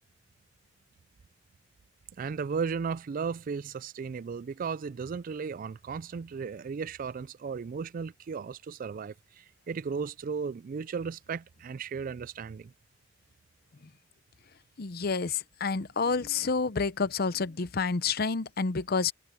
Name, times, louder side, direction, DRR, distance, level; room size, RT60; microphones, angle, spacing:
voice 1, 2.2-12.7, right 5 dB, 45° right, 0.3 m, -35 dB
voice 2, 14.8-19.1, left 4 dB, 55° left, 0.7 m, -29 dB
head